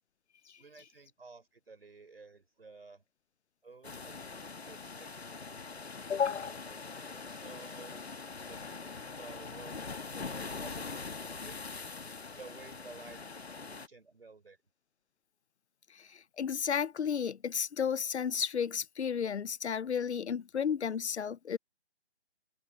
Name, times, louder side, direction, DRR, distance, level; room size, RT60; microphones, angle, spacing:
voice 1, 0.6-3.0 3.6-5.1 5.4-5.6 6.1-8.1 8.4-11.6 12.3-14.6, right 4 dB, 60° right, 5.2 m, -53 dB
sound 1, 3.8-13.9, left 4 dB, 70° left, 1.9 m, -43 dB
voice 2, 6.1-6.5 16.4-21.6, left 7 dB, 90° left, 0.6 m, -32 dB
figure-of-eight pair, 175°, 33 cm